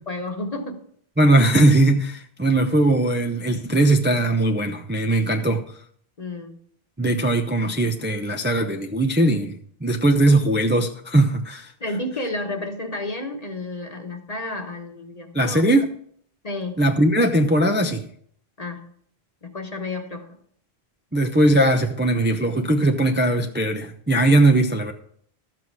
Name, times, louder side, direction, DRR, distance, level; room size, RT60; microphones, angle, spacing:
voice 1, 0.1-0.8 6.2-6.5 11.8-15.7 16.4-16.8 18.6-18.8 19.4-20.4, left 2 dB, 40° left, 4 dB, 1.3 m, -31 dB
voice 2, 1.2-5.7 7.0-11.7 15.3-15.9 16.8-18.1 21.1-24.9, right 1 dB, 15° right, 3 dB, 0.6 m, -19 dB
12.5 x 7.8 x 4.7 m, 0.63 s
omnidirectional pair, 1.1 m